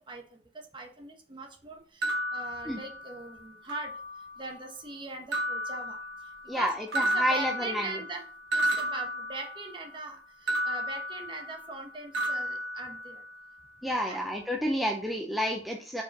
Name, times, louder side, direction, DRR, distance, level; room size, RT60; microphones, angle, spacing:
voice 1, 0.1-8.2 8.5-13.2 14.1-14.2, right 3 dB, 25° right, 2 dB, 1.1 m, -41 dB
sound 1, 2.0-3.3 3.7-4.5 5.3-6.6 6.9-9.9 10.5-11.8 12.1-13.5, right 1 dB, 80° right, 1.3 m, -33 dB
voice 2, 6.5-7.9 13.8-16.0, equal, ahead, 0 dB, 0.5 m, -30 dB
5.0 x 4.8 x 4.1 m, 0.41 s
head